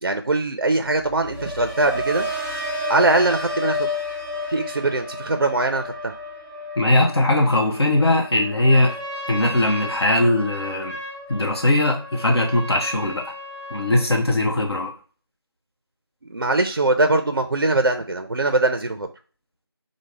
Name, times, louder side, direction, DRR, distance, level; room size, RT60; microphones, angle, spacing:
voice 1, 0.0-2.3 2.9-3.9 4.5-6.1 16.3-19.1, right 2 dB, 55° right, 6 dB, 0.4 m, -21 dB
sound 1, 0.8-10.9 11.3-11.7, left 1 dB, 45° left, 1.3 m, -32 dB
voice 2, 6.8-9.0 9.3-11.0 11.3-13.3 13.7-14.9, left 1 dB, 75° left, 1 dB, 0.8 m, -20 dB
Trumpet, 8.6-14.1, left 1 dB, 15° left, 1.8 m, -35 dB
4.8 x 2.0 x 3.2 m, 0.39 s
figure-of-eight pair, 175°, 14 cm